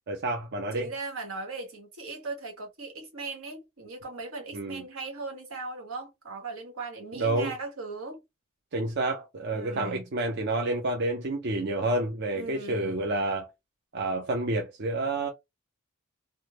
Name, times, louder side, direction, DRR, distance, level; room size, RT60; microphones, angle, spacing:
voice 1, 0.1-0.9 4.5-4.8 7.2-7.5 8.7-13.5 13.9-15.3, right 2 dB, 55° right, 0.6 m, -29 dB
voice 2, 0.7-8.2 9.5-10.1 12.3-12.9, right 3 dB, 80° right, 1.4 m, -38 dB
3.4 x 2.1 x 2.9 m
head